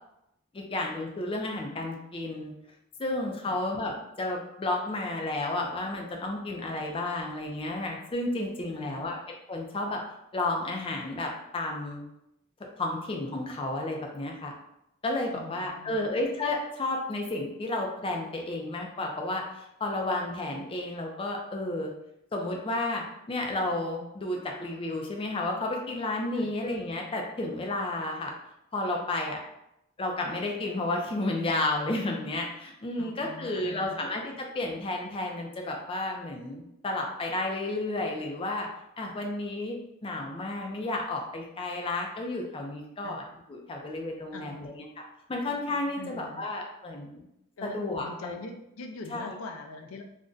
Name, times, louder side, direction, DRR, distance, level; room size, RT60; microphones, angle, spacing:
voice 1, 0.5-2.5 3.0-10.0 10.3-12.1 12.8-14.5 15.0-21.9 22.3-28.3 28.7-29.4 30.0-38.7 39.0-43.2 43.5-44.9 45.3-47.3 47.6-48.3 49.1-49.3, left 2 dB, 25° left, 1 dB, 0.5 m, -32 dB
voice 2, 8.7-9.2 15.3-16.0 26.4-26.5 33.0-34.0 43.0-43.2 44.3-44.8 46.0-46.4 47.6-50.0, left 3 dB, 90° left, 5 dB, 0.4 m, -43 dB
2.5 x 2.1 x 3.6 m, 0.83 s
head